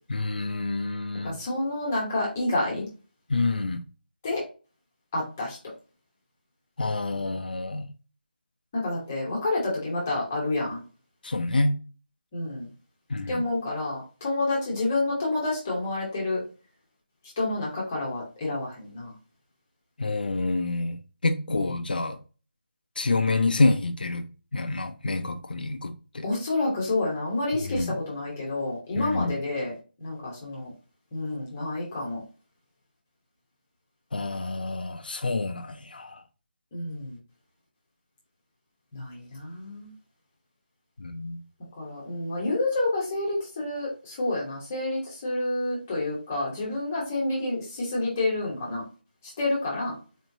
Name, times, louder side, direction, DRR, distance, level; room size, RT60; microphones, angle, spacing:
voice 1, 0.1-1.3 3.3-3.8 6.8-7.9 11.2-11.8 13.1-13.4 20.0-21.0 21.2-22.2 23.0-24.3 24.5-26.3 27.7-27.9 28.9-29.3 34.1-36.2 41.0-41.4, left 3 dB, 60° left, 0.6 m, -27 dB
voice 2, 1.2-2.9 4.2-4.4 5.1-5.6 8.7-10.8 12.3-12.7 13.3-16.4 17.4-19.1 21.5-21.7 26.2-29.7 30.0-30.7 31.1-32.2 36.7-37.2 38.9-39.9 41.8-48.8 49.2-50.0, left 2 dB, 10° left, 0.9 m, -29 dB
4.3 x 3.0 x 2.7 m
figure-of-eight pair, 180°, 6 cm